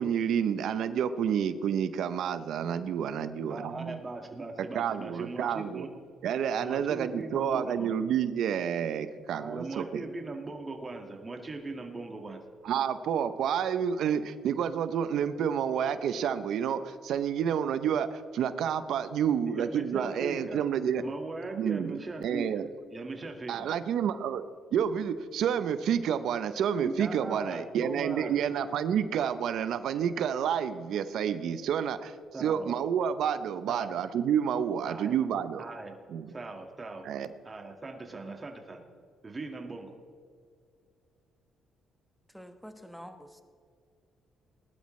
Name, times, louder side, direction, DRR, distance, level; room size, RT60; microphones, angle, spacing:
voice 1, 0.0-4.0 4.7-5.8 6.2-9.8 12.6-21.0 21.6-21.9 22.2-22.7 23.5-24.4 24.7-32.1 32.4-35.6 36.1-36.3 37.0-37.3, right 8 dB, 75° right, 12 dB, 0.6 m, -29 dB
voice 2, 3.5-5.9 6.6-7.9 9.4-12.4 19.5-20.6 21.0-22.6 22.9-23.5 26.8-28.4 32.3-32.7 33.7-33.9 34.8-35.1 35.6-35.9 36.3-37.1 37.4-38.8 39.2-39.9, right 3 dB, 30° right, 2 dB, 1.7 m, -39 dB
voice 3, 42.3-43.4, equal, ahead, 7 dB, 1.2 m, -47 dB
19.5 x 12.0 x 3.2 m, 2.1 s
cardioid pair, 90°, 0 cm